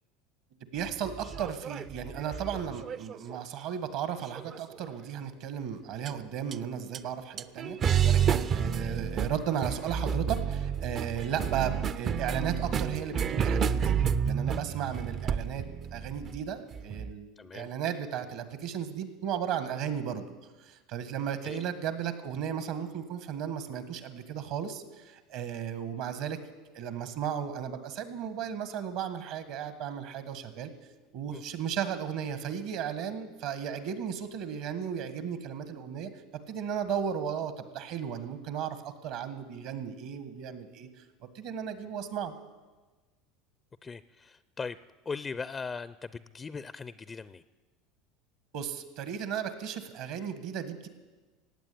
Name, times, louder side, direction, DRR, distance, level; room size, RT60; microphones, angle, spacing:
voice 1, 0.7-15.7 15.9-20.3 20.6-26.4 26.7-30.7 31.1-36.1 36.5-40.9 41.4-42.3 48.5-50.9, right 8 dB, 65° right, 11 dB, 1.7 m, -35 dB
sound 1, 0.9-3.4 4.3-4.9 6.1-6.2 6.5-6.6 6.9-7.0 7.4-17.1, right 7 dB, 40° right, 0.6 m, -30 dB
voice 2, 8.4-8.7 17.4-17.7 21.4-21.6 31.3-31.4 43.8-44.8 45.1-47.4, left 5 dB, 25° left, 15 dB, 0.5 m, -39 dB
16.5 x 8.8 x 8.7 m, 1.3 s
hypercardioid pair, 85°, 0 cm